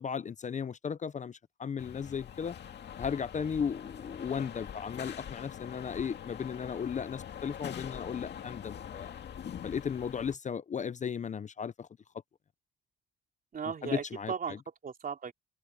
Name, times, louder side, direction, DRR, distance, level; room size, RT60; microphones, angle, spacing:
voice 1, 0.0-2.6 3.0-9.2 9.6-11.9 13.8-14.6, left 7 dB, 35° left, 0.7 m, -35 dB
sound 1, 1.8-10.4, left 9 dB, 60° left, 2.2 m, -44 dB
voice 2, 13.5-15.3, right 6 dB, 45° right, 3.3 m, -37 dB
cardioid pair, 90°, 20 cm